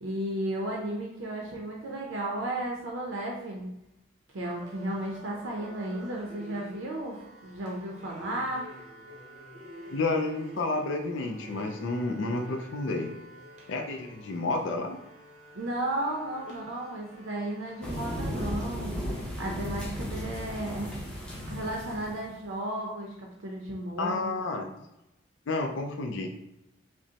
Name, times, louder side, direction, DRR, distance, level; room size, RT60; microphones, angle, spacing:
voice 1, 0.0-3.7 4.3-8.7 15.5-19.0 19.4-20.9 21.5-24.3, right 1 dB, 85° right, -1 dB, 0.6 m, -34 dB
sound 1, 4.4-18.5, equal, 35° right, 0.6 m, -49 dB
voice 2, 9.9-13.1 13.7-15.0 24.0-24.7 25.5-26.3, left 2 dB, 75° left, 3 dB, 0.4 m, -30 dB
sound 2, 17.8-22.3, equal, 5° left, 0.6 m, -35 dB
5.1 x 2.0 x 2.8 m, 0.88 s
head